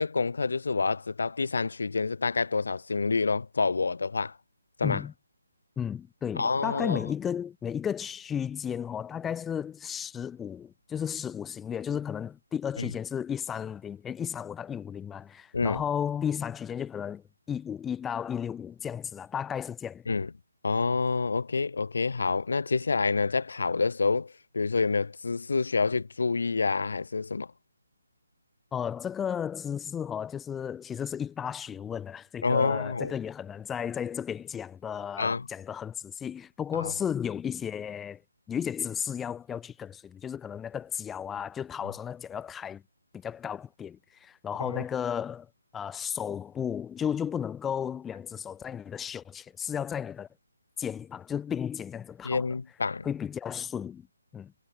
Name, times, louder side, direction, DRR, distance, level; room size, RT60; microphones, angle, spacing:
voice 1, 0.0-4.3 4.8-5.0 6.4-7.0 12.8-12.9 15.5-15.8 20.1-20.3 20.6-27.5 32.4-33.1 35.2-35.5 36.7-36.9 44.7-44.8 52.2-53.1, left 4 dB, 70° left, 5.8 m, -28 dB
voice 2, 4.8-5.1 5.8-20.0 28.7-38.2 38.5-42.8 43.1-50.3 50.8-52.5 53.0-54.0 54.3-54.5, left 8 dB, 10° left, 3.2 m, -34 dB
hypercardioid pair, 160°, 0 cm